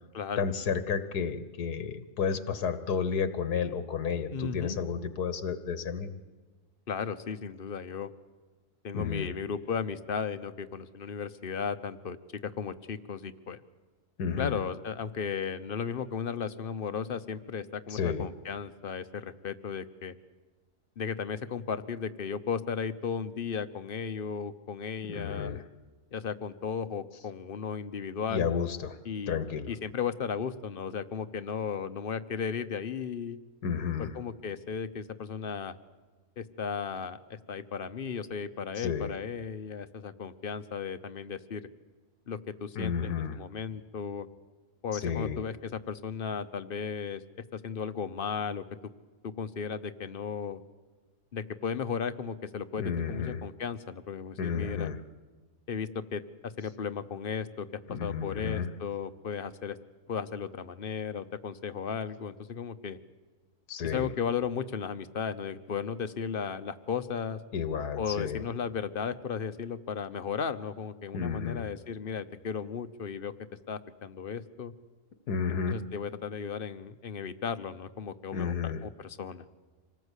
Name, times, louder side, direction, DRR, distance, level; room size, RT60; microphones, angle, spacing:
voice 1, 0.4-6.1 8.9-9.3 14.2-14.6 17.9-18.3 25.1-25.6 28.3-29.0 29.3-29.7 33.6-34.1 38.8-39.1 42.7-43.4 44.9-45.4 52.8-53.4 54.4-55.0 57.9-58.7 63.7-64.1 67.5-68.4 71.1-71.7 75.3-75.8 78.3-78.8, left 6 dB, 85° left, 11 dB, 1.7 m, -32 dB
voice 2, 4.3-4.8 6.9-8.1 8.8-12.2 12.4-13.6 14.4-20.1 21.0-25.6 26.1-28.5 29.0-29.4 29.7-33.4 34.0-35.8 36.4-41.6 42.3-44.3 44.8-47.2 47.5-48.6 49.4-50.6 51.3-54.9 55.7-59.8 60.1-63.0 63.9-67.4 68.0-73.3 73.7-74.7 75.7-79.4, left 6 dB, 40° left, 11 dB, 0.9 m, -35 dB
26.5 x 19.0 x 8.2 m, 1.3 s
omnidirectional pair, 1.6 m